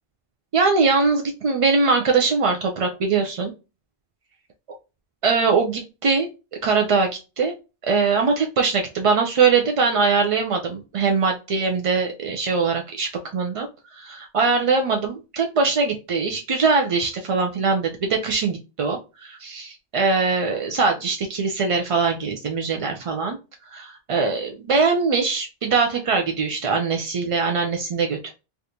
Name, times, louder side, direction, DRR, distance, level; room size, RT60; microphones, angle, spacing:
voice 1, 0.5-3.5 5.2-6.3 6.6-7.1 7.4-7.5 7.8-13.7 13.9-23.4 23.7-28.3, right 4 dB, 55° right, 3 dB, 0.3 m, -22 dB
3.4 x 2.5 x 2.7 m, 0.29 s
omnidirectional pair, 1.0 m